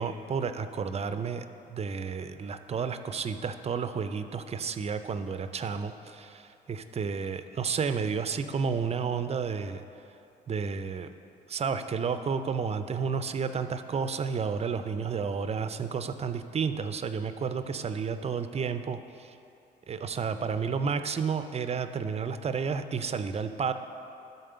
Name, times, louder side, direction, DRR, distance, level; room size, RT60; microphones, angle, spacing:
voice 1, 0.0-9.8 10.5-11.1 11.5-19.3 19.9-23.7, right 6 dB, 35° right, 10 dB, 0.5 m, -31 dB
10.0 x 4.3 x 6.7 m, 2.7 s
cardioid pair, 80°, 19 cm